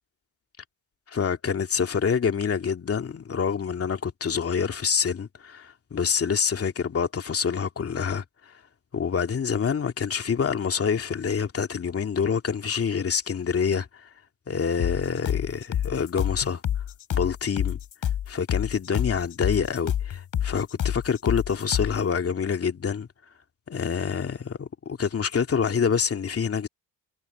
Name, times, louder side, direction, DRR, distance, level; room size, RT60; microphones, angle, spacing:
voice 1, 1.1-8.2 8.9-14.1 14.5-16.6 17.1-17.8 18.3-23.1 23.7-26.7, left 6 dB, 35° left, 2.6 m, -26 dB
sound 1, 14.8-22.0, left 10 dB, 55° left, 3.3 m, -28 dB
cardioid pair, 90°, 38 cm